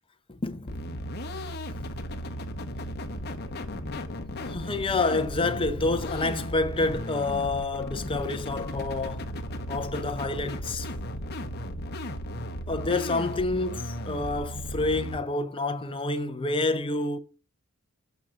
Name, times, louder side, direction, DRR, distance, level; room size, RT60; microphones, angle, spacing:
voice 1, 0.3-0.8 4.4-9.3 9.7-10.9 12.7-17.2, left 3 dB, 25° left, 0.7 m, -28 dB
sound 1, 0.7-15.2, equal, 45° left, 0.9 m, -35 dB
6.9 x 5.8 x 3.7 m
head